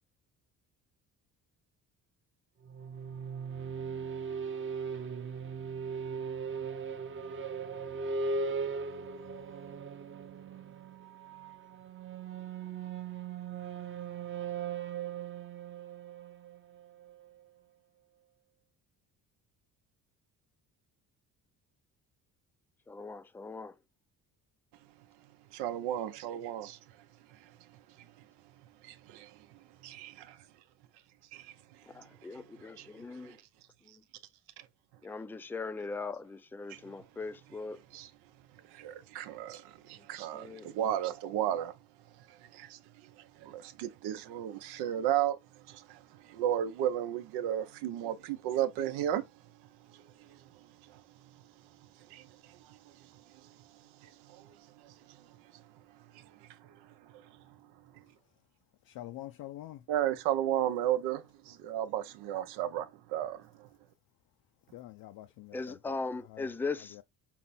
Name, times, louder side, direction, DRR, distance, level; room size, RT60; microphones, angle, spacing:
sound 1, 2.6-17.3, right 5 dB, 30° right, 0.7 m, -38 dB
voice 1, 22.9-23.7 31.9-33.4 35.0-37.8 40.3-40.7 65.5-67.0, left 3 dB, 5° left, 0.4 m, -39 dB
voice 2, 25.5-26.8 28.8-29.4 29.8-30.4 31.3-31.5 32.3-32.4 32.8-32.9 33.2-33.4 36.7-36.8 37.9-38.1 38.7-41.7 42.4-43.1 43.4-45.4 45.7-49.2 49.9-50.4 50.9-51.0 52.1-52.8 53.4-53.5 54.0-54.6 54.8-55.2 55.5-55.6 56.1-56.5 57.1-57.2 59.9-63.7, right 11 dB, 90° right, 0.7 m, -34 dB
voice 3, 58.8-59.8 64.7-66.5 66.9-67.0, left 14 dB, 65° left, 0.5 m, -46 dB
5.8 x 2.1 x 4.1 m
cardioid pair, 80°, 38 cm